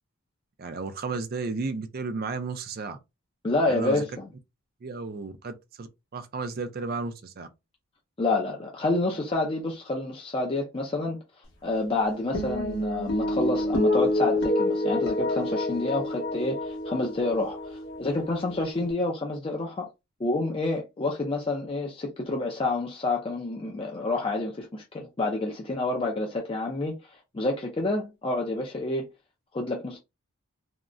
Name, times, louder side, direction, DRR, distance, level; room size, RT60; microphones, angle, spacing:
voice 1, 0.6-3.0 3.6-4.0 4.8-7.5, right 4 dB, 45° right, 0.4 m, -33 dB
voice 2, 3.4-4.3 8.2-11.2 11.6-19.9 20.2-29.1 29.5-30.0, left 2 dB, 25° left, 0.4 m, -28 dB
sound 1, 12.3-18.9, left 1 dB, 60° left, 1.0 m, -28 dB
3.5 x 2.0 x 2.4 m
head